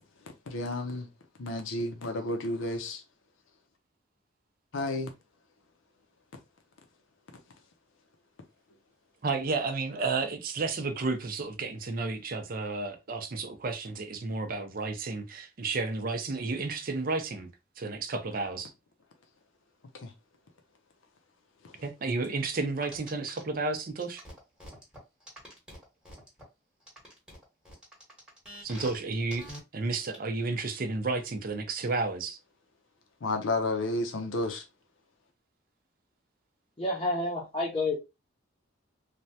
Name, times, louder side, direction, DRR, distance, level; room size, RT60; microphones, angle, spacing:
voice 1, 0.5-1.1 1.4-3.0 4.7-5.1 20.0-20.1 21.6-21.7 33.2-34.6, left 2 dB, 80° left, 0.6 m, -31 dB
voice 2, 9.2-17.5 17.8-18.7 21.8-24.2 28.6-29.5 29.7-32.4, right 3 dB, 45° right, 0.5 m, -32 dB
sound 1, 22.8-23.4 24.0-26.4 26.9-29.0 29.3-29.6 30.0-30.2, equal, 5° right, 1.0 m, -46 dB
voice 3, 36.8-38.0, left 2 dB, 25° left, 0.7 m, -29 dB
3.2 x 2.2 x 2.7 m
head